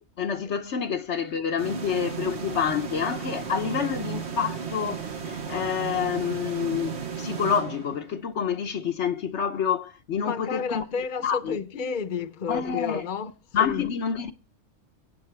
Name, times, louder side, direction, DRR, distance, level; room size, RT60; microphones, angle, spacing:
voice 1, 0.2-10.8 11.2-11.6 12.5-13.0 13.5-14.3, left 7 dB, 60° left, 1.2 m, -28 dB
sound 1, 1.6-8.3, right 6 dB, 55° right, 1.5 m, -34 dB
voice 2, 10.2-13.3 13.6-13.9, left 6 dB, 40° left, 1.0 m, -31 dB
23.5 x 8.8 x 3.4 m
omnidirectional pair, 1.4 m